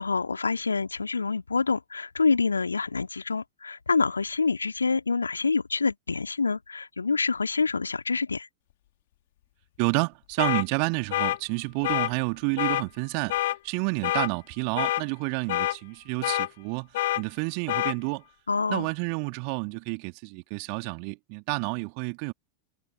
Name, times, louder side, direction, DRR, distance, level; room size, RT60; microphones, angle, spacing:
voice 1, 0.0-8.5 18.5-18.9, left 4 dB, 75° left, 2.1 m, -26 dB
voice 2, 9.8-13.4 13.6-16.9 17.2-18.2 18.7-22.3, right 40 dB or more, 45° right, 2.6 m, -29 dB
sound 1, 10.4-10.6 11.1-11.4 11.8-12.1 12.6-12.8 13.3-13.6 14.0-14.3 14.8-15.0 15.5-15.8 16.2-16.5 16.9-17.2 17.7-17.9, left 15 dB, 55° left, 2.6 m, -26 dB
figure-of-eight pair, 90°, 0 cm